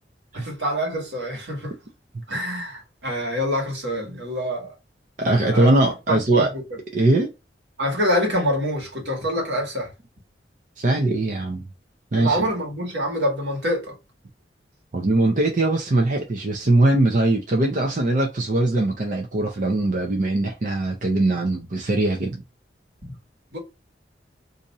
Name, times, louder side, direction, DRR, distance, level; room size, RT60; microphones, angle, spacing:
voice 1, 0.3-1.7 2.3-4.7 5.5-5.7 6.1-6.5 7.8-9.9 12.1-13.9 23.0-23.1 23.5-23.6, equal, 80° right, 1.5 m, -26 dB
voice 2, 5.2-6.5 6.9-7.3 10.8-11.6 12.1-12.5 14.9-22.4, right 2 dB, 45° right, 0.6 m, -21 dB
2.7 x 2.5 x 4.0 m
head